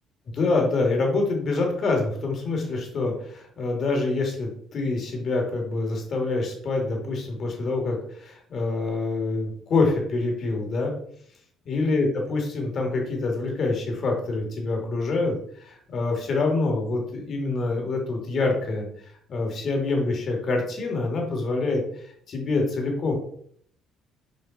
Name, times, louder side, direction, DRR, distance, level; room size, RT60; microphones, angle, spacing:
voice 1, 0.3-10.9 11.7-18.9 19.3-21.8 22.3-23.2, left 3 dB, 50° left, 1 dB, 2.9 m, -26 dB
7.6 x 5.2 x 4.3 m, 0.63 s
hypercardioid pair, 55°, 0 cm